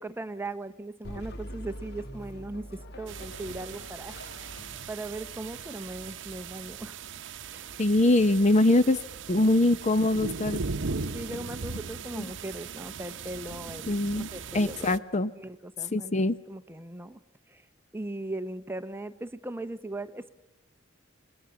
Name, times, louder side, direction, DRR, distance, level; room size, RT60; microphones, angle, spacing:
voice 1, 0.0-4.2 4.9-7.0 7.5-7.9 9.3-9.5 11.1-15.0 15.3-17.2 17.5-17.7 17.9-20.3, right 2 dB, 10° right, 11 dB, 0.9 m, -39 dB
sound 1, 1.0-6.5, equal, 55° left, 1.8 m, -44 dB
sound 2, 3.1-15.0, right 5 dB, 65° right, 0.8 m, -38 dB
voice 2, 7.8-9.0 9.3-10.6 12.2-12.3 13.9-14.3 14.5-15.3 15.9-16.4, left 2 dB, 35° left, 14 dB, 0.7 m, -23 dB
27.5 x 21.0 x 7.1 m, 1.0 s
head